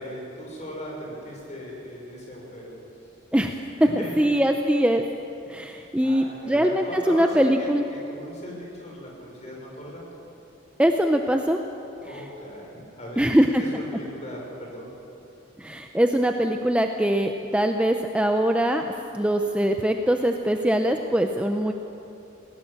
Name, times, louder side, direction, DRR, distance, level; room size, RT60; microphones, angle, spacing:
voice 1, 0.0-2.7 3.7-4.3 6.0-10.0 12.0-12.7 13.0-14.9, equal, 35° left, -3 dB, 6.2 m, -38 dB
voice 2, 4.0-5.0 5.5-7.9 10.8-11.6 13.2-13.6 15.6-18.9 19.1-21.7, equal, 5° right, 4 dB, 0.6 m, -22 dB
20.0 x 18.5 x 7.2 m, 2.8 s
head